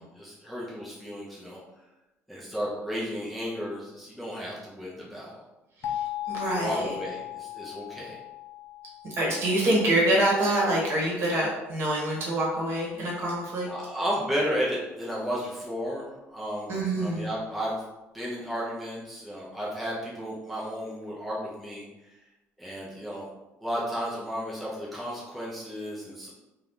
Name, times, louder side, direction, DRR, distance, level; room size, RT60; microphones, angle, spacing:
voice 1, 0.0-1.6 2.3-5.3 6.3-8.2 13.7-16.7 17.0-17.8 18.1-21.8 22.6-23.2 23.6-26.3, equal, ahead, -7 dB, 0.6 m, -33 dB
sound 1, 5.8-10.5, left 13 dB, 50° left, 0.4 m, -37 dB
voice 2, 6.3-6.9 9.2-13.7 16.7-17.3, right 1 dB, 50° right, -4 dB, 1.1 m, -25 dB
2.8 x 2.4 x 3.5 m, 1.0 s
cardioid pair, 150°, 5 cm